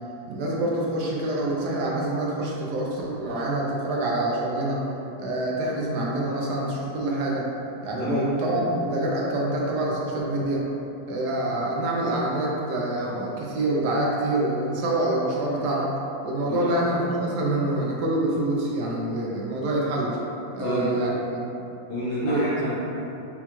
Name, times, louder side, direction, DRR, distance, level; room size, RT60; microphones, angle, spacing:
voice 1, 0.3-4.8 5.2-7.5 7.8-10.6 11.1-15.9 16.2-20.2 20.5-21.1 22.2-22.4, right 1 dB, 70° right, -3 dB, 1.0 m, -26 dB
voice 2, 20.6-21.0 21.9-22.7, equal, 70° left, -10 dB, 1.3 m, -28 dB
5.8 x 2.3 x 2.9 m, 3.0 s
omnidirectional pair, 2.1 m